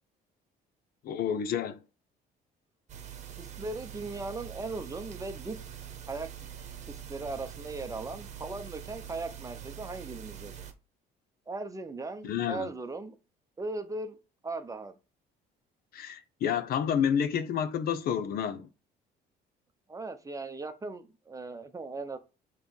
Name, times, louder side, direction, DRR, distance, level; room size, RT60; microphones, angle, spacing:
voice 1, 1.0-1.8 12.2-12.7 15.9-18.7, left 8 dB, 65° left, 0.8 m, -29 dB
sound 1, 2.9-10.7, right 9 dB, 45° right, 1.2 m, -44 dB
voice 2, 3.4-5.6 6.1-6.3 6.9-10.5 11.5-13.2 13.6-14.2 14.4-14.9 19.9-22.2, right 3 dB, 20° right, 0.9 m, -38 dB
6.9 x 3.2 x 5.3 m
cardioid pair, 110°, 17 cm